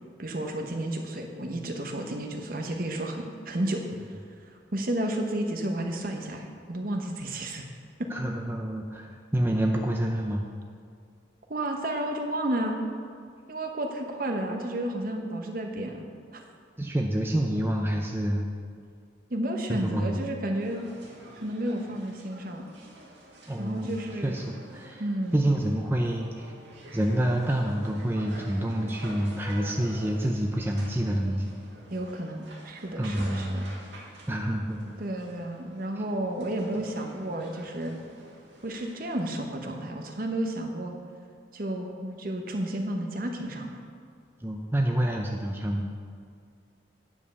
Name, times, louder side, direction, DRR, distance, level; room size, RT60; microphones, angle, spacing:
voice 1, 0.2-4.2 4.5-7.7 11.5-12.8 13.5-16.4 19.3-20.8 21.3-22.7 23.6-24.5 25.0-25.5 31.9-33.6 35.0-38.0 38.6-40.9 41.5-43.8, right 1 dB, 50° right, 3 dB, 1.0 m, -32 dB
voice 2, 8.1-10.5 16.8-18.5 19.7-20.1 23.5-23.9 24.2-25.0 25.3-26.5 26.9-31.5 33.0-33.8 34.3-34.8 44.4-45.9, right 1 dB, 10° right, 1 dB, 0.5 m, -27 dB
sound 1, 20.6-39.4, right 1 dB, 70° right, 2.0 m, -48 dB
9.5 x 5.3 x 6.9 m, 2.1 s
head